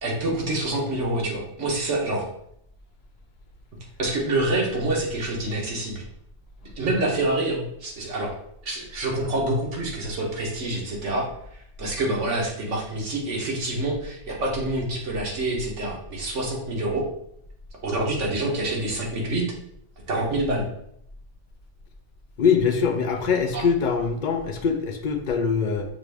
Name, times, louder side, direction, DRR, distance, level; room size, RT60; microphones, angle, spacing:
voice 1, 0.0-2.3 4.0-6.0 6.8-8.4 8.6-17.1 17.8-19.4 20.1-20.6 23.5-23.6, right 2 dB, 85° right, -1 dB, 1.4 m, -27 dB
voice 2, 22.4-25.9, left 6 dB, 55° left, 5 dB, 0.6 m, -23 dB
5.8 x 2.5 x 3.4 m, 0.73 s
omnidirectional pair, 1.2 m